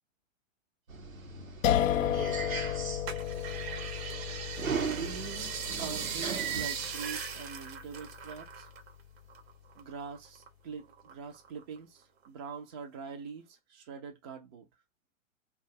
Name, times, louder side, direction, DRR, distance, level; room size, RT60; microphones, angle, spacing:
sound 1, 0.9-6.7, right 5 dB, 85° right, 0.9 m, -39 dB
sound 2, 1.6-8.6, left 10 dB, 70° left, 0.5 m, -33 dB
sound 3, 3.1-8.9 9.2-10.5 10.9-11.8 12.2-12.3, right 7 dB, 50° right, 0.8 m, -39 dB
voice 1, 4.8-8.7 9.8-14.7, right 6 dB, 20° right, 0.3 m, -43 dB
2.4 x 2.3 x 2.6 m
figure-of-eight pair, 110°, 40 cm